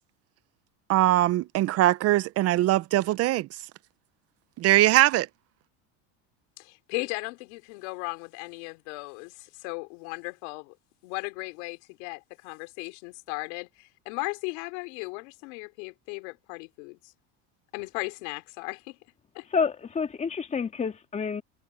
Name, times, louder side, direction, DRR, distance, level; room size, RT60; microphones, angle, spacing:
voice 1, 0.9-3.5 4.6-5.3, right 15 dB, 45° right, 0.7 m, -21 dB
voice 2, 6.6-10.7 11.0-17.1 17.7-19.0 19.3-19.5, left 29 dB, 80° left, 4.5 m, -37 dB
voice 3, 19.5-21.4, left 5 dB, 20° left, 2.3 m, -28 dB
supercardioid pair, 135°, 35 cm